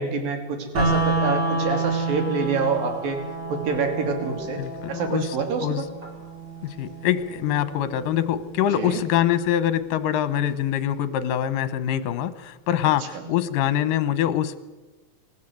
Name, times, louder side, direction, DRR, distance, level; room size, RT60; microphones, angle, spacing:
voice 1, 0.0-3.2 3.5-4.6 4.9-5.8 8.7-9.0 13.1-13.3, right 4 dB, 80° right, 4 dB, 4.6 m, -26 dB
sound 1, 0.8-10.7, right 3 dB, 30° right, 5.6 m, -30 dB
voice 2, 4.6-5.4 5.6-5.8 6.6-14.6, left 11 dB, 75° left, 13 dB, 2.7 m, -24 dB
27.0 x 15.0 x 7.9 m, 1.2 s
omnidirectional pair, 3.9 m